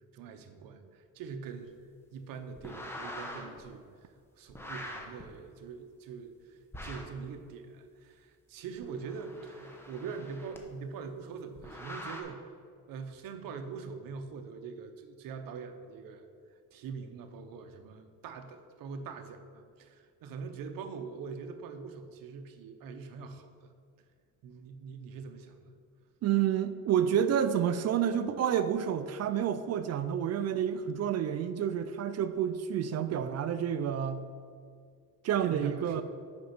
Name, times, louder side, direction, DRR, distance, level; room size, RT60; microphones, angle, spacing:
voice 1, 0.1-1.7 2.1-3.9 4.3-12.4 12.9-16.3 16.7-23.7 24.4-25.7 35.4-36.0, right 5 dB, 70° right, 7 dB, 0.8 m, -43 dB
sound 1, 2.6-3.6 4.5-5.2 6.7-7.2 8.7-10.6 11.6-12.2, left 1 dB, 5° left, 0.8 m, -43 dB
voice 2, 26.2-34.3 35.2-36.0, right 9 dB, 50° right, 11 dB, 0.4 m, -29 dB
5.9 x 5.3 x 5.9 m, 2.2 s
cardioid pair, 130°, 35 cm